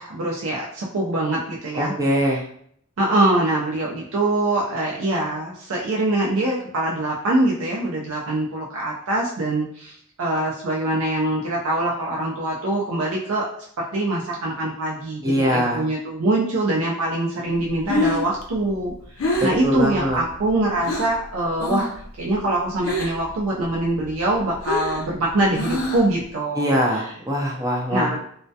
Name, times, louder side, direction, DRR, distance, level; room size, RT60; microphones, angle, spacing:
voice 1, 0.0-1.9 3.0-13.5 13.8-18.9 19.2-21.9 22.2-27.1 27.9-28.2, right 1 dB, 90° right, -3 dB, 0.5 m, -23 dB
voice 2, 1.7-2.4 15.2-15.8 19.6-20.2 26.6-28.2, equal, 15° right, 0 dB, 0.4 m, -22 dB
Breathing, 17.6-21.2 21.6-22.0 22.3-23.3 23.7-26.2, left 1 dB, 75° left, 0.4 m, -27 dB
2.2 x 2.1 x 2.6 m, 0.65 s
head